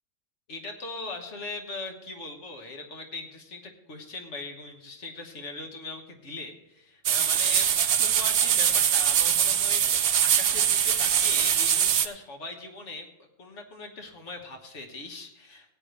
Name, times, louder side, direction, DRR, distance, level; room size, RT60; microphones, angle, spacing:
voice 1, 0.5-13.1 13.4-15.7, left 3 dB, 60° left, 3 dB, 1.7 m, -40 dB
sound 1, 7.0-12.1, right 9 dB, 55° right, 0.7 m, -23 dB
17.5 x 8.5 x 3.3 m, 0.91 s
omnidirectional pair, 1.4 m